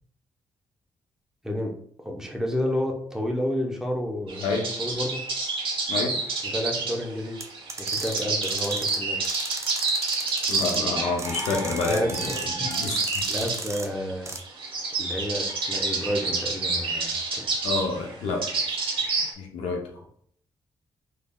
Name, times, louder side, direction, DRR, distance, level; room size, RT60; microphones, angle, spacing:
voice 1, 2.0-4.4 4.8-5.2 6.4-7.4 7.8-9.3 11.8-12.7 13.3-14.4 15.0-17.4, left 1 dB, 5° right, 1 dB, 0.9 m, -30 dB
sound 1, 4.3-19.3, right 3 dB, 60° right, 1.0 m, -29 dB
sound 2, 7.4-9.0 9.2-10.8 11.2-12.5 12.7-13.9 14.3-14.4, right 2 dB, 30° right, 0.7 m, -36 dB
voice 2, 10.5-12.3 12.6-13.2 17.6-18.4 19.4-20.0, left 3 dB, 85° left, 0 dB, 0.7 m, -28 dB
3.7 x 3.3 x 2.3 m, 0.63 s
supercardioid pair, 55°, 10 cm